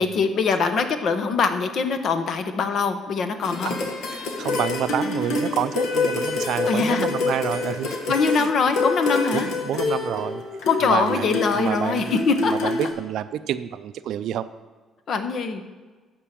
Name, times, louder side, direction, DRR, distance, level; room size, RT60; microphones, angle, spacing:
voice 1, 0.0-3.8 6.7-7.1 8.1-9.5 10.7-12.7 15.1-15.6, left 5 dB, 55° left, 8 dB, 0.9 m, -23 dB
sound 1, 3.4-12.9, left 4 dB, 75° left, 1.7 m, -27 dB
voice 2, 3.6-8.0 8.3-8.5 9.3-10.4 10.8-12.2 12.4-14.5, right 10 dB, 75° right, 12 dB, 0.4 m, -28 dB
11.5 x 4.6 x 7.5 m, 1.3 s
cardioid pair, 110°, 0 cm